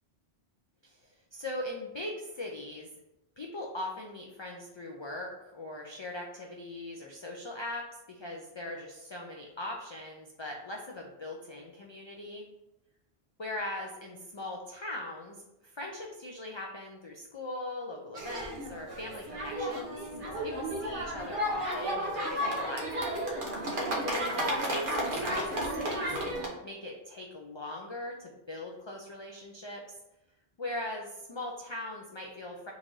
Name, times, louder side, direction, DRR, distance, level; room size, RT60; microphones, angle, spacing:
voice 1, 0.8-2.9 3.4-12.4 13.4-22.9 24.1-29.8 30.6-32.7, left 1 dB, 40° left, -1 dB, 0.4 m, -40 dB
sound 1, 18.1-26.5, equal, 50° right, 1.1 m, -33 dB
3.9 x 2.6 x 4.6 m, 0.91 s
omnidirectional pair, 1.1 m